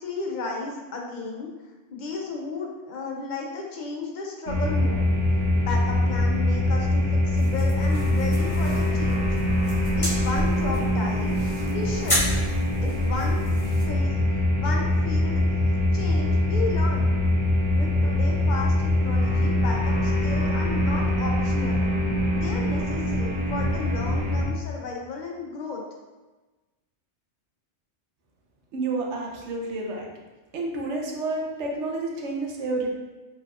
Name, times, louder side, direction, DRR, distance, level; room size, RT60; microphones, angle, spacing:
voice 1, 0.0-1.5 1.9-5.1 5.6-9.3 10.0-11.3 11.6-12.2 12.8-13.4 13.9-15.4 15.9-17.1 17.7-21.9 22.3-25.8, left 3 dB, 50° left, 0 dB, 0.7 m, -34 dB
sound 1, 4.5-24.4, left 1 dB, 65° right, 1.4 m, -23 dB
sound 2, 7.4-13.8, equal, 30° left, 1.4 m, -32 dB
voice 2, 28.7-30.1 30.5-32.9, right 2 dB, 80° right, -1 dB, 1.1 m, -29 dB
4.9 x 3.4 x 2.3 m, 1.2 s
omnidirectional pair, 1.2 m